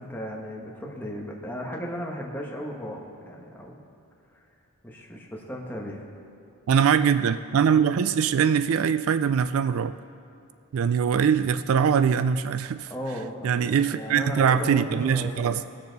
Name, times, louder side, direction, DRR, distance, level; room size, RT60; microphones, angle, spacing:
voice 1, 0.0-3.8 4.8-6.1 12.9-15.6, equal, 10° left, -2 dB, 1.3 m, -36 dB
voice 2, 6.7-9.9 10.7-12.9 13.4-15.6, right 7 dB, 65° right, 13 dB, 0.3 m, -22 dB
19.5 x 6.7 x 4.1 m, 2.6 s
head